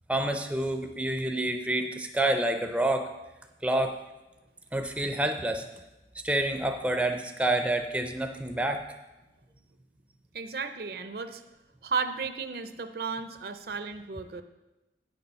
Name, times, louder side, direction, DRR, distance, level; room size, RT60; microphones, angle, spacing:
voice 1, 0.1-3.1 3.6-4.0 4.7-5.6 6.2-8.8, right 1 dB, 5° right, 6 dB, 0.5 m, -28 dB
voice 2, 10.3-11.4 11.8-14.4, right 5 dB, 55° right, 9 dB, 0.6 m, -34 dB
9.1 x 6.8 x 5.6 m, 1.0 s
head